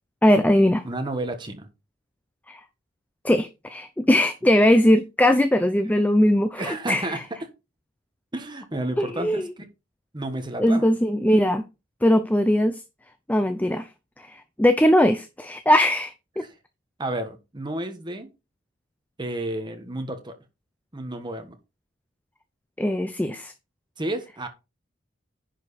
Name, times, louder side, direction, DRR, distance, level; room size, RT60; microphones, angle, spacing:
voice 1, 0.2-0.9 2.5-2.6 3.2-7.2 9.0-9.5 10.6-11.6 12.0-12.8 13.3-13.9 14.2-16.4 22.8-23.5, left 1 dB, 10° left, 0.6 m, -20 dB
voice 2, 0.8-1.7 6.5-7.5 8.3-9.6 10.1-10.9 16.4-16.5 17.0-18.3 19.2-20.3 20.9-21.5 24.0-24.5, right 1 dB, 25° right, 1.5 m, -31 dB
10.5 x 5.0 x 4.2 m
head